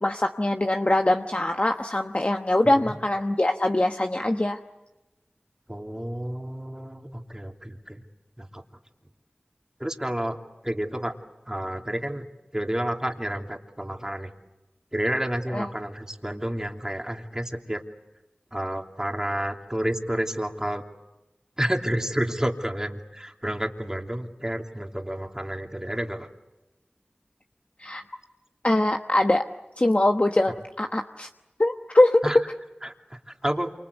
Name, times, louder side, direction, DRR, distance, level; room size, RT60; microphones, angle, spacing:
voice 1, 0.0-4.6 15.5-15.7 27.8-28.0 28.6-29.4 29.8-31.3 31.6-32.2, left 1 dB, 40° left, 5 dB, 1.2 m, -22 dB
voice 2, 2.6-3.0 5.7-8.0 8.4-8.6 9.8-10.4 10.6-11.2 11.5-12.3 12.5-14.3 14.9-17.8 18.5-20.8 21.6-26.3 32.2-32.4 32.8-33.7, right 1 dB, 15° right, 3 dB, 2.9 m, -30 dB
28.0 x 25.5 x 8.2 m, 1.0 s
wide cardioid pair, 40°, 3 cm